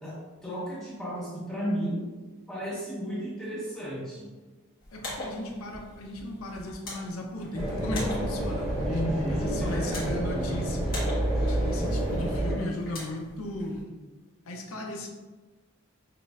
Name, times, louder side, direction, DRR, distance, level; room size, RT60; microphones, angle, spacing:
voice 1, 0.0-2.0 2.5-4.3 8.8-10.2, equal, 5° left, -8 dB, 1.1 m, -33 dB
sound 1, 4.8-13.8, left 1 dB, 45° left, 1.4 m, -43 dB
voice 2, 4.9-11.0 11.3-13.8 14.4-15.1, left 1 dB, 90° left, 1 dB, 0.6 m, -36 dB
sound 2, 7.5-12.5, right 1 dB, 30° right, 1.3 m, -29 dB
5.9 x 2.5 x 2.4 m, 1.3 s
head